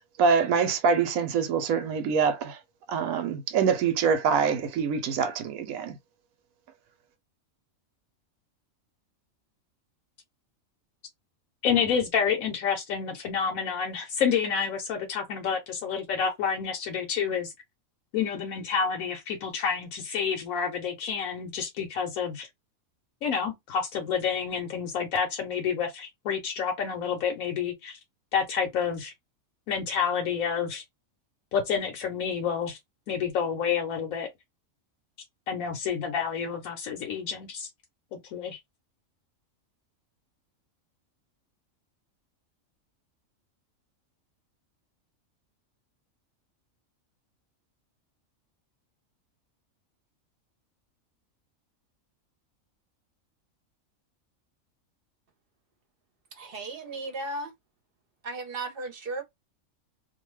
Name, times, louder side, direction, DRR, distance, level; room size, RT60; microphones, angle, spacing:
voice 1, 0.2-2.6 2.9-6.0, right 6 dB, 90° right, 1.1 m, -25 dB
voice 2, 11.6-17.5 18.1-22.5 23.2-28.0 28.3-29.1 29.7-30.8 31.5-32.8 33.1-34.3 35.5-37.7 38.1-38.6, left 7 dB, 80° left, 1.1 m, -29 dB
voice 3, 56.3-57.5 58.2-59.2, right 2 dB, 50° right, 0.9 m, -35 dB
2.6 x 2.2 x 3.1 m
omnidirectional pair, 1.4 m